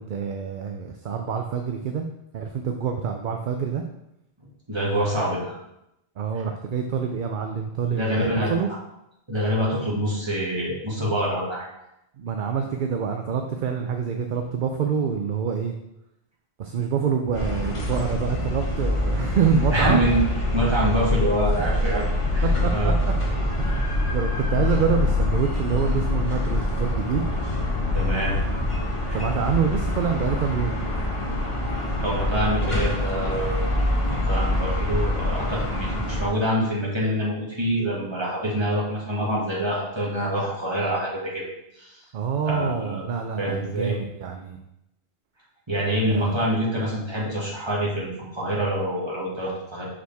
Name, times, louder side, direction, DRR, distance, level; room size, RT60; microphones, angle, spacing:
voice 1, 0.0-2.0 2.3-3.8 6.2-8.7 12.2-15.7 16.6-20.0 21.5-21.8 22.2-23.1 23.6-23.7 24.1-27.2 29.1-30.8 42.1-44.6 46.1-46.4, right 7 dB, 60° right, 4 dB, 0.6 m, -26 dB
voice 2, 4.7-5.6 7.9-8.5 9.3-11.6 19.7-20.2 20.5-22.0 22.3-22.9 27.9-28.4 29.1-29.2 32.0-33.6 34.1-41.5 41.8-42.0 42.4-43.0 43.4-44.0 45.7-49.9, equal, 25° right, -5 dB, 1.8 m, -26 dB
sound 1, 17.3-36.3, left 1 dB, 30° left, 1.1 m, -25 dB
6.2 x 4.9 x 3.4 m, 0.84 s
omnidirectional pair, 1.1 m